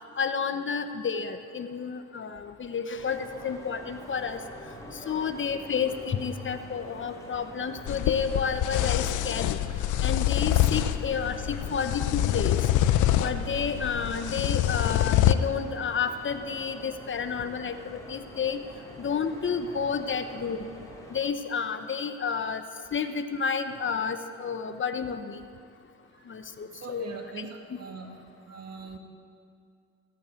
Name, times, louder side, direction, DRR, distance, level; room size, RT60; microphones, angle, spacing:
voice 1, 0.2-4.4 5.1-9.6 10.0-12.6 13.2-18.6 19.0-20.7 21.1-22.6 22.9-25.4 26.3-27.1 27.4-27.5, left 6 dB, 40° left, 9 dB, 1.0 m, -30 dB
sound 1, 2.9-21.2, left 1 dB, 10° left, 3.3 m, -46 dB
sound 2, 7.9-15.3, left 12 dB, 80° left, 0.7 m, -25 dB
voice 2, 26.7-29.0, right 4 dB, 55° right, 4 dB, 2.2 m, -42 dB
19.0 x 9.0 x 8.3 m, 2.4 s
cardioid pair, 90°, 30 cm